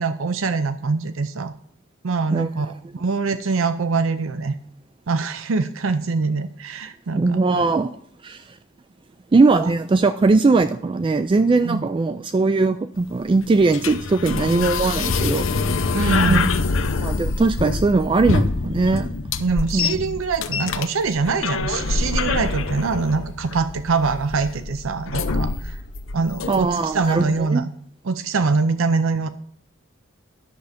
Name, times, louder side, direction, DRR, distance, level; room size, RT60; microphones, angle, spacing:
voice 1, 0.0-1.5 2.0-4.6 5.1-7.7 11.6-11.8 15.9-16.5 19.4-25.8 26.1-27.7 28.0-29.3, right 4 dB, 70° right, 12 dB, 0.6 m, -23 dB
voice 2, 7.1-7.9 8.2-8.6 9.3-15.5 16.3-16.4 17.0-19.1 19.7-20.0 26.5-27.6, right 3 dB, 25° right, 11 dB, 0.3 m, -20 dB
sound 1, 12.9-26.9, left 4 dB, 65° left, 0.7 m, -25 dB
10.5 x 6.9 x 5.1 m, 0.65 s
head